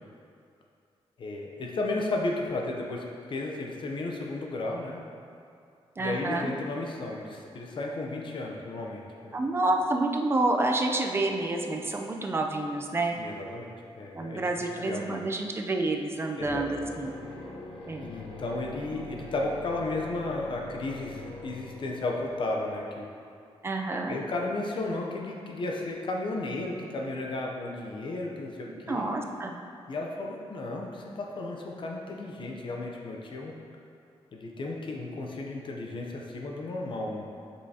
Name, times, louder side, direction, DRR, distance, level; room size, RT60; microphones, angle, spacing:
voice 1, 1.2-5.0 6.0-9.4 13.2-13.7 14.0-15.2 16.4-16.9 18.0-23.1 24.1-29.1 29.9-33.5 34.3-37.3, left 2 dB, 50° left, -1 dB, 0.7 m, -34 dB
voice 2, 6.0-6.5 9.3-13.2 14.1-16.7 17.0-17.1 17.9-18.1 23.6-24.2 28.9-29.5, right 2 dB, 25° right, 3 dB, 0.5 m, -28 dB
sound 1, 16.4-22.7, left 2 dB, 75° left, 1.0 m, -44 dB
8.0 x 5.5 x 2.8 m, 2.4 s
wide cardioid pair, 155°, 10 cm